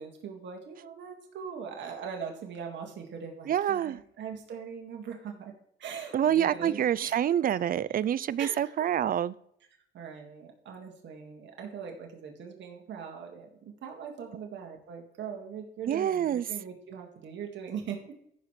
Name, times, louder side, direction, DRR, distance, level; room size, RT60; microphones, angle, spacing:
voice 1, 0.0-5.5 5.8-7.2 8.4-8.9 9.9-18.2, right 6 dB, 65° right, 2.0 m, -41 dB
voice 2, 3.5-4.0 6.1-9.3 15.8-16.5, right 10 dB, 45° right, 0.4 m, -27 dB
14.5 x 5.8 x 3.2 m
cardioid pair, 90°, 20 cm